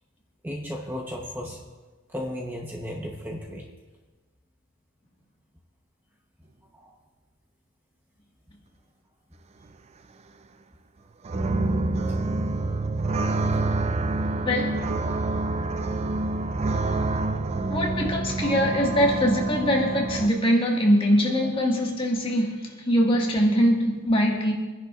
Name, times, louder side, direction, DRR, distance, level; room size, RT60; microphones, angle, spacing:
voice 1, 0.4-1.6 2.1-3.7 6.8-6.9, equal, 10° right, -1 dB, 0.9 m, -34 dB
sound 1, 11.2-20.3, right 2 dB, 30° right, 0.4 m, -27 dB
voice 2, 14.4-14.8 17.7-24.5, equal, 25° left, -1 dB, 1.7 m, -22 dB
27.0 x 10.5 x 2.4 m, 1.3 s
head